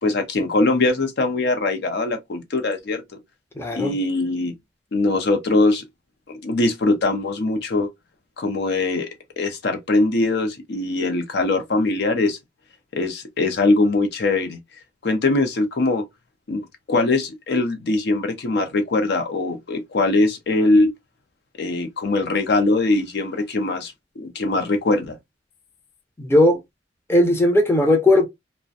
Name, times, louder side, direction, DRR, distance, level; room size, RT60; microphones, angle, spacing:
voice 1, 0.0-3.2 3.7-4.5 4.9-5.9 6.3-7.9 8.4-9.1 9.4-12.4 12.9-14.6 15.0-16.0 16.5-20.9 21.6-25.2, left 2 dB, 60° left, 0.5 m, -21 dB
voice 2, 3.6-3.9 26.2-26.6 27.1-28.3, left 1 dB, 15° left, 0.5 m, -17 dB
2.4 x 2.1 x 2.5 m
head